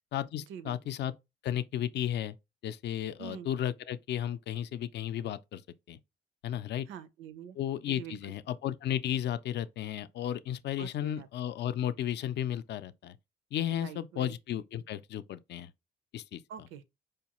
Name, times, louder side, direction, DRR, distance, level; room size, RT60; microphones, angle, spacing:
voice 1, 0.1-1.1 1.4-2.4 2.6-5.6 5.9-6.0 6.4-6.9 7.6-13.2 13.5-15.7 16.1-16.4, left 11 dB, 60° left, 0.4 m, -34 dB
voice 2, 6.9-7.6 7.9-8.3 10.8-11.3 13.7-14.3 16.5-16.8, right 8 dB, 90° right, 0.6 m, -45 dB
4.9 x 2.3 x 2.9 m
cardioid pair, 90°, 20 cm